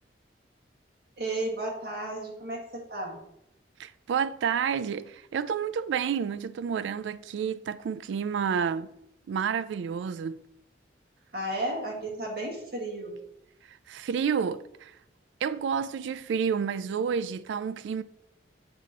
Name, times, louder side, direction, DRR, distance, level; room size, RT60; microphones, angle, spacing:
voice 1, 1.2-3.2 11.3-13.1, right 1 dB, 55° right, 1.8 m, -33 dB
voice 2, 3.8-8.9 9.3-10.4 13.9-14.9 15.4-18.0, right 7 dB, 75° right, 0.3 m, -30 dB
7.5 x 3.0 x 5.8 m
head